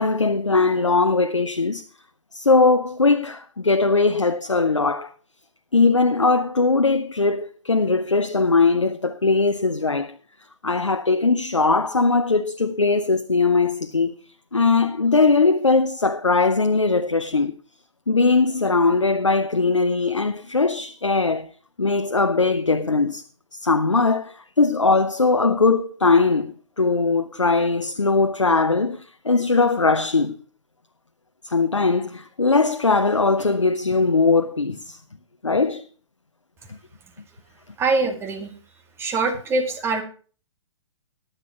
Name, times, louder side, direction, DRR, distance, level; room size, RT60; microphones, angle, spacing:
voice 1, 0.0-1.9 2.3-5.1 5.7-10.2 10.6-14.1 14.5-17.5 18.1-21.5 21.8-23.2 23.5-30.4 31.4-35.0 35.4-35.8 36.7-36.8, left 3 dB, 85° left, 0.7 m, -20 dB
voice 2, 37.8-38.5 39.0-40.0, right 3 dB, 15° right, 2.0 m, -23 dB
15.0 x 10.5 x 3.0 m
figure-of-eight pair, 115°, 15 cm